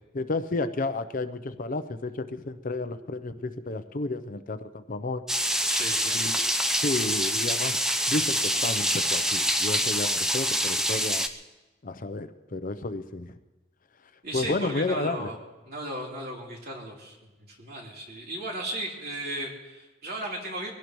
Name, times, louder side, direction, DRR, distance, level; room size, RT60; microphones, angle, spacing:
voice 1, 0.1-5.2 6.1-6.4 6.8-7.8 8.1-11.3 11.8-13.3 14.3-15.3, left 2 dB, 45° left, 10 dB, 0.7 m, -31 dB
sound 1, 5.3-11.3, equal, 5° right, 0.6 m, -26 dB
voice 2, 5.7-6.2 14.2-15.3 15.7-17.2 17.5-20.7, right 1 dB, 50° right, -3 dB, 3.7 m, -35 dB
23.5 x 16.5 x 3.1 m, 1.1 s
head